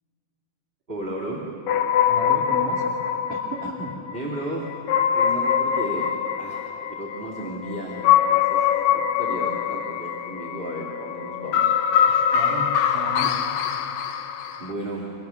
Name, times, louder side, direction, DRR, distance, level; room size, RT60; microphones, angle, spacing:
voice 1, 0.9-1.5 4.1-6.1 6.4-6.6 6.9-11.7 14.6-15.1, right 1 dB, 15° right, -4 dB, 2.7 m, -34 dB
sound 1, 1.7-14.7, left 9 dB, 90° left, 3.0 m, -23 dB
voice 2, 2.1-2.8 3.3-3.9 12.1-13.4, right 2 dB, 60° right, -3 dB, 4.0 m, -34 dB
29.0 x 26.0 x 7.2 m, 2.9 s
omnidirectional pair, 4.4 m